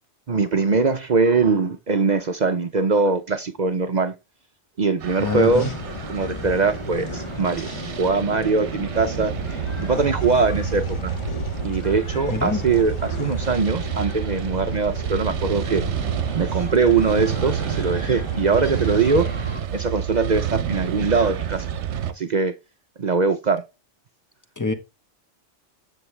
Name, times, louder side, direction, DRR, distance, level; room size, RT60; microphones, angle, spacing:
voice 1, 0.3-4.1 4.8-5.7 6.1-7.7 8.0-11.2 11.6-15.8 16.4-19.3 19.7-21.7 22.2-22.6 23.0-23.6, right 4 dB, 45° right, 0.7 m, -22 dB
sound 1, 5.0-22.1, right 9 dB, 75° right, 1.0 m, -29 dB
voice 2, 5.2-5.7 12.3-12.6 24.6-24.7, left 3 dB, 15° left, 1.0 m, -25 dB
sound 2, 5.3-19.6, left 5 dB, 35° left, 0.6 m, -35 dB
9.0 x 7.0 x 3.2 m
omnidirectional pair, 1.2 m